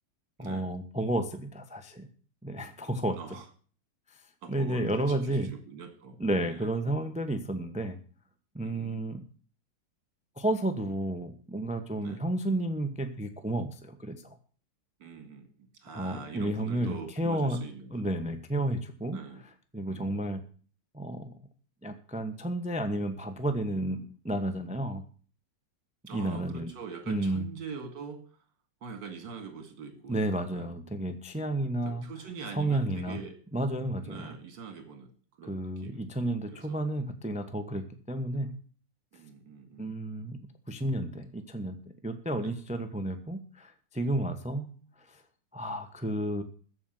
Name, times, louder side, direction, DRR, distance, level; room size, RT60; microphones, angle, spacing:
voice 1, 0.4-2.1 2.4-3.4 4.1-4.2 4.5-5.5 6.2-8.0 8.5-9.2 10.4-14.4 15.9-17.6 17.9-19.2 19.7-20.4 20.9-21.4 21.8-25.0 26.1-26.7 27.1-27.4 30.1-32.0 32.5-33.2 33.5-34.3 35.5-38.5 39.8-40.4 40.7-41.8 42.0-44.7 45.0-45.2 45.5-46.4, right 1 dB, 5° right, 8 dB, 0.8 m, -32 dB
voice 2, 4.4-6.7 8.6-9.0 12.0-12.2 15.0-18.1 19.1-19.4 19.9-20.3 26.1-28.2 28.8-30.7 31.8-33.3 34.0-35.1 35.4-36.0 36.5-36.8 39.1-39.9 42.4-42.5, right 6 dB, 65° right, 7 dB, 2.8 m, -44 dB
14.0 x 5.6 x 9.2 m, 0.42 s
omnidirectional pair, 2.0 m